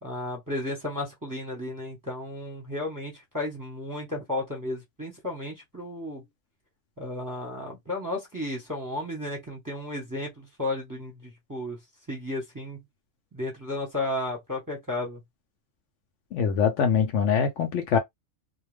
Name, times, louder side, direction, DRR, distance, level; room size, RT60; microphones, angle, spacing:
voice 1, 0.0-6.2 7.0-11.8 12.1-12.8 13.3-15.2, left 1 dB, 15° right, 0.8 m, -33 dB
voice 2, 16.3-18.0, left 6 dB, 65° left, 0.8 m, -23 dB
2.4 x 2.2 x 3.2 m
omnidirectional pair, 1.5 m